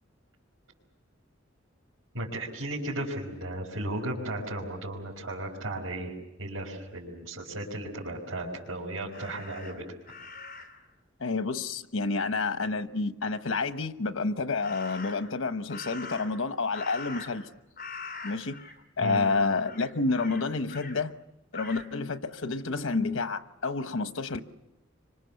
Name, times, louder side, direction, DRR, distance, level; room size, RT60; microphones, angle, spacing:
voice 1, 2.1-6.1 6.4-9.8 19.0-19.2, right 1 dB, 80° right, 5.3 m, -35 dB
Crow, 9.1-10.8 14.6-15.3 15.7-17.5 17.8-18.8 19.1-19.3 19.6-21.0 21.5-21.9, left 4 dB, 45° left, 3.2 m, -43 dB
voice 2, 11.2-17.5 18.2-18.6 19.0-21.1 21.5-24.4, left 3 dB, 85° left, 1.0 m, -29 dB
27.5 x 25.0 x 7.0 m
head